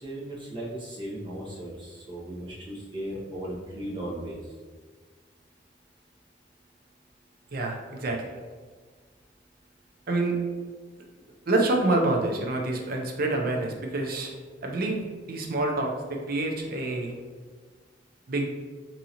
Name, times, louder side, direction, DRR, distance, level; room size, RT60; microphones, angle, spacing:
voice 1, 0.0-1.7 2.1-4.4, right 1 dB, 30° right, -6 dB, 1.0 m, -36 dB
voice 2, 7.5-8.2 10.1-10.4 11.5-14.3 14.6-17.1 18.3-18.5, right 2 dB, 55° right, 1 dB, 0.6 m, -27 dB
3.6 x 2.7 x 2.9 m, 1.5 s
head